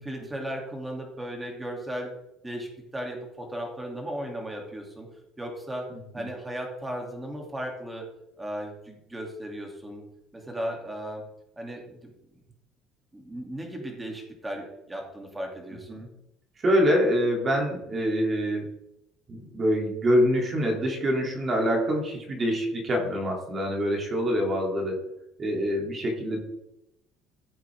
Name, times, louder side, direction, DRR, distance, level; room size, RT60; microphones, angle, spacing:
voice 1, 0.0-2.1 2.4-5.1 5.4-5.9 6.1-8.1 8.4-10.0 10.3-11.2 11.6-12.1 13.1-16.0, equal, 10° right, 1 dB, 3.0 m, -36 dB
voice 2, 5.9-6.3 15.9-16.1 16.6-18.7 19.3-25.1 25.4-26.4, equal, 30° right, 0 dB, 3.2 m, -25 dB
15.5 x 7.9 x 3.7 m, 0.85 s
cardioid pair, 135°, 0 cm